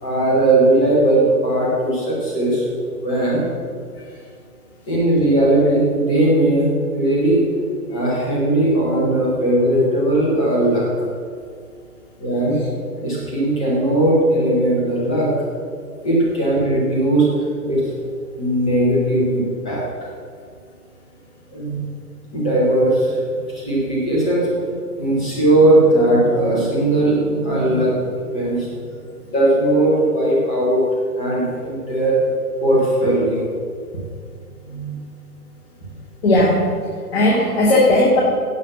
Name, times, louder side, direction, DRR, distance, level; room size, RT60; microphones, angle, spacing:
voice 1, 0.0-2.7 3.0-3.4 4.9-6.7 6.9-7.4 7.9-11.1 12.2-12.6 13.0-15.3 16.0-17.3 17.7-17.8 18.4-20.1 21.5-21.8 22.3-23.2 23.5-24.5 25.0-28.7 29.3-30.8 31.2-32.2 32.6-33.5 34.6-35.0, right 1 dB, 5° left, -5 dB, 0.5 m, -18 dB
voice 2, 36.2-36.6 37.1-38.2, left 1 dB, 40° left, -3 dB, 2.2 m, -16 dB
16.5 x 5.8 x 7.0 m, 2.1 s
hypercardioid pair, 145°, 47 cm